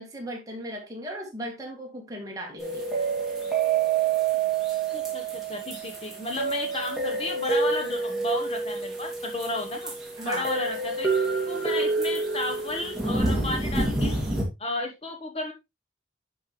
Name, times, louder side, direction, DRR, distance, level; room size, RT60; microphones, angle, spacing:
voice 1, 0.0-2.9 10.2-10.5, right 1 dB, 20° right, 2.2 m, -37 dB
sound 1, 2.6-14.4, right 4 dB, ahead, 2.6 m, -27 dB
voice 2, 4.9-9.9 10.2-11.1 11.5-14.2 14.6-15.5, left 2 dB, 30° left, 1.1 m, -33 dB
11.0 x 5.3 x 3.2 m
head